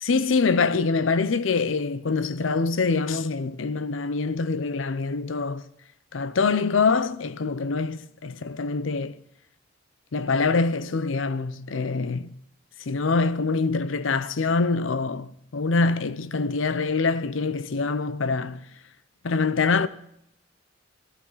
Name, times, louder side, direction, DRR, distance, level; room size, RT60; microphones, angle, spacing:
voice 1, 0.0-5.6 6.1-9.2 10.1-12.3 12.9-18.6 19.2-19.9, left 4 dB, 85° left, 0.7 m, -25 dB
18.5 x 13.0 x 4.0 m
head